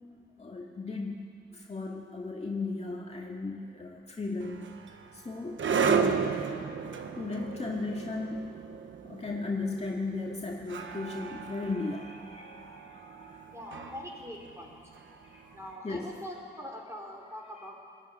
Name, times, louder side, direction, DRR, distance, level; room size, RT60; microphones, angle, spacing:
voice 1, 0.4-1.3 1.5-4.8 5.1-5.6 5.9-6.3 7.2-8.5 9.0-13.6 15.1-15.6 15.8-16.1, left 3 dB, 35° left, -1 dB, 2.2 m, -36 dB
sound 1, 4.4-15.5, right 6 dB, 85° right, 1.2 m, -34 dB
voice 2, 13.5-14.8 15.5-17.8, left 1 dB, 15° right, 0 dB, 4.9 m, -43 dB
20.0 x 14.0 x 9.8 m, 2.3 s
cardioid pair, 80°, 19 cm